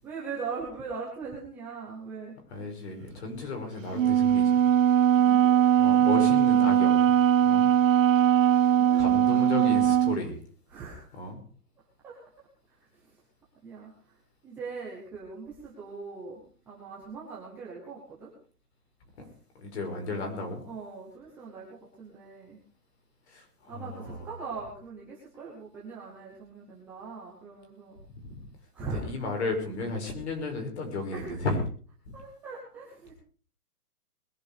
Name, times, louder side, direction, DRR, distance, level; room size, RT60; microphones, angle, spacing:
voice 1, 0.0-2.4 5.2-5.7 8.7-9.8 10.7-11.1 12.0-12.2 12.7-13.2 13.6-14.2 14.4-16.4 16.7-18.3 20.6-22.6 23.7-28.0 28.7-29.0 31.1-31.4 32.1-33.1, right 5 dB, 5° right, -5 dB, 0.9 m, -41 dB
voice 2, 2.5-4.7 5.8-7.1 7.4-7.7 8.5-10.4 11.1-11.4 19.2-19.3 19.5-20.6 23.3-24.3 28.1-28.5 28.8-31.6 32.1-32.2, left 3 dB, 45° left, 4 dB, 5.6 m, -34 dB
Wind instrument woodwind instrument, 3.9-10.2, right 10 dB, 60° right, 0.9 m, -21 dB
21.0 x 10.5 x 5.0 m, 0.43 s
hypercardioid pair, 175°, 45 cm